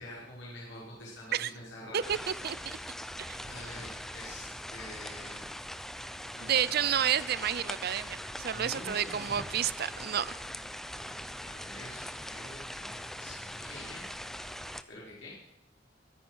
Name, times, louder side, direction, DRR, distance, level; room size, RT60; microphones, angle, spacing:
voice 1, 0.0-2.2 2.7-2.8 3.3-5.4 6.2-6.5 8.5-9.4 11.4-14.0 14.9-15.4, left 1 dB, 85° left, -5 dB, 5.7 m, -46 dB
sound 1, 2.0-14.8, equal, ahead, 0.6 m, -42 dB
voice 2, 2.4-2.8 3.3-3.4 6.4-10.3, right 9 dB, 55° right, 17 dB, 0.5 m, -30 dB
22.0 x 10.0 x 6.3 m, 0.83 s
head